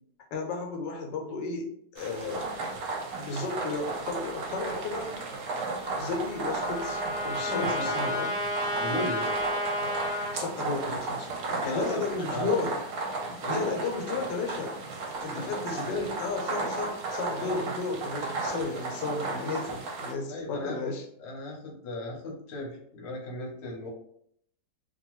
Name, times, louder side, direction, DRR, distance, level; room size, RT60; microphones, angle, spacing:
voice 1, 0.3-2.5 3.2-5.1 5.9-8.4 10.2-12.8 13.3-14.8 15.2-21.0, left 3 dB, 90° left, 2 dB, 1.3 m, -33 dB
sound 1, 2.0-20.1, right 3 dB, 70° right, 1.0 m, -34 dB
Trumpet, 5.8-10.3, equal, 5° right, 0.5 m, -32 dB
voice 2, 7.3-8.1 8.8-9.3 11.6-12.6 13.4-13.7 15.3-16.1 17.4-17.6 20.3-20.9 21.2-23.9, left 2 dB, 50° left, -3 dB, 0.9 m, -36 dB
2.9 x 2.2 x 3.0 m, 0.69 s
omnidirectional pair, 1.9 m